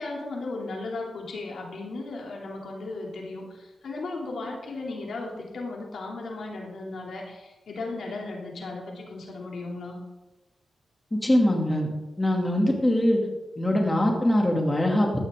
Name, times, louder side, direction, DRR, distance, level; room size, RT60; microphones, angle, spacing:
voice 1, 0.0-10.0, left 3 dB, 80° left, -1 dB, 3.0 m, -36 dB
voice 2, 11.1-11.9 12.2-13.2 13.6-15.3, left 1 dB, 15° left, 0 dB, 2.7 m, -22 dB
15.0 x 11.5 x 3.8 m, 1.1 s
cardioid pair, 85°, 0 cm